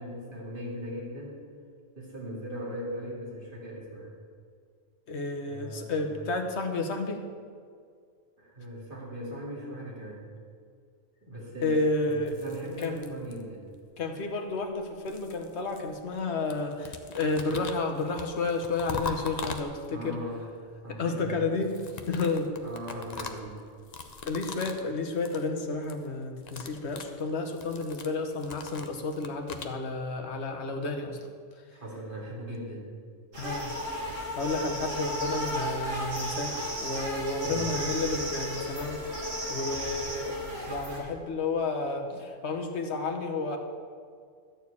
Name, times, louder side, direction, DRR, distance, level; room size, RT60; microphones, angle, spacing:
voice 1, 0.0-1.4 1.9-4.1 5.4-6.3 8.4-10.3 11.2-13.7 19.9-20.5 20.8-21.5 22.6-23.6 31.7-32.9 35.9-36.0 37.4-37.7, equal, 40° right, -4 dB, 2.5 m, -39 dB
voice 2, 5.1-7.2 11.6-12.3 12.8-13.0 14.0-20.2 21.0-21.7 22.1-22.5 24.2-31.2 33.4-33.7 34.0-36.5 36.8-39.0 39.5-40.4 40.7-43.6, left 3 dB, 60° left, 4 dB, 1.2 m, -31 dB
sound 1, 12.1-13.7 14.6-16.2 16.5-20.1 21.5-24.9 25.1-25.5 25.7-26.1 26.3-29.8, left 4 dB, 40° left, 0.7 m, -41 dB
sound 2, 33.3-41.0, equal, 75° right, 2.9 m, -34 dB
12.5 x 4.5 x 8.3 m, 2.1 s
omnidirectional pair, 1.3 m